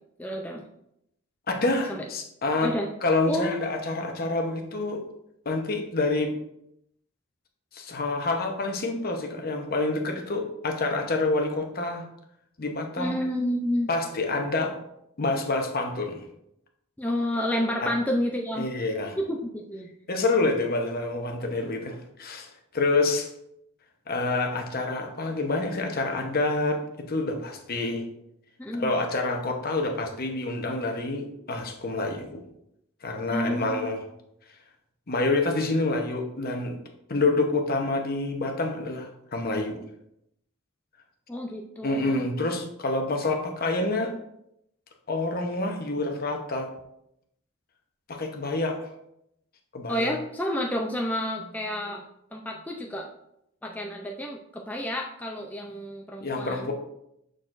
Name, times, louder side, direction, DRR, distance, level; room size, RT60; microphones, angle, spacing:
voice 1, 0.2-0.6 1.9-2.0 2.6-2.9 3.3-3.6 13.0-13.9 17.0-18.7 19.3-19.9 28.6-28.9 33.3-33.9 41.3-42.2 49.9-52.0 52.3-53.1 53.6-56.7, left 1 dB, 10° left, 1 dB, 0.4 m, -30 dB
voice 2, 1.5-2.7 3.0-5.0 5.4-6.4 7.7-12.0 12.6-13.2 13.9-14.7 15.2-16.2 17.8-17.9 18.5-19.2 20.1-23.3 24.1-28.1 28.7-32.4 33.0-34.0 35.1-36.8 37.1-39.8 41.8-44.1 45.1-46.7 48.1-48.8 49.7-50.2 56.2-56.7, left 2 dB, 50° left, 3 dB, 0.9 m, -27 dB
6.5 x 6.3 x 2.5 m, 0.78 s
head